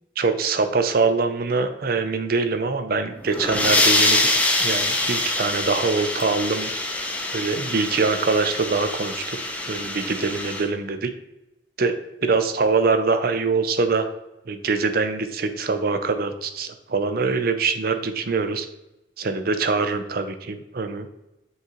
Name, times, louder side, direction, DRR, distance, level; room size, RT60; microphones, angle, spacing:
voice 1, 0.2-6.7 7.3-9.4 9.6-11.1 11.8-11.9 12.2-14.1 14.5-18.7 19.2-21.1, right 4 dB, 55° right, 9 dB, 0.6 m, -23 dB
sound 1, 3.2-10.6, left 2 dB, 10° left, 0.6 m, -24 dB
8.0 x 3.9 x 3.1 m, 0.94 s
head